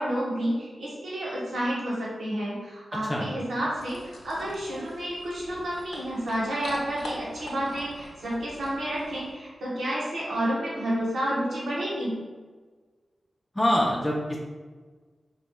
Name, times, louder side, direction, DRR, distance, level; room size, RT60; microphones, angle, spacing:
voice 1, 0.0-12.2, right 1 dB, 80° right, -6 dB, 0.9 m, -30 dB
sound 1, 3.7-9.3, left 1 dB, 70° left, 0.6 m, -43 dB
voice 2, 13.6-14.4, left 1 dB, 10° left, -3 dB, 0.5 m, -24 dB
3.0 x 2.9 x 2.2 m, 1.4 s
cardioid pair, 55°, 0 cm